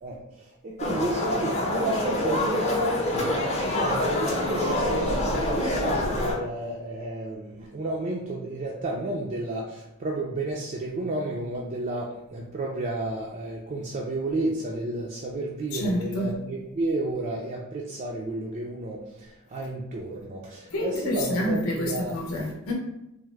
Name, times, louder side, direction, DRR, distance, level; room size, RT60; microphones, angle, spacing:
voice 1, 0.0-22.2, right 2 dB, 35° right, -3 dB, 0.3 m, -32 dB
sound 1, 0.8-6.4, left 1 dB, 30° left, 0.6 m, -26 dB
voice 2, 15.7-16.3 20.7-22.7, left 1 dB, 70° left, -2 dB, 0.7 m, -28 dB
3.4 x 2.0 x 3.2 m, 0.87 s
head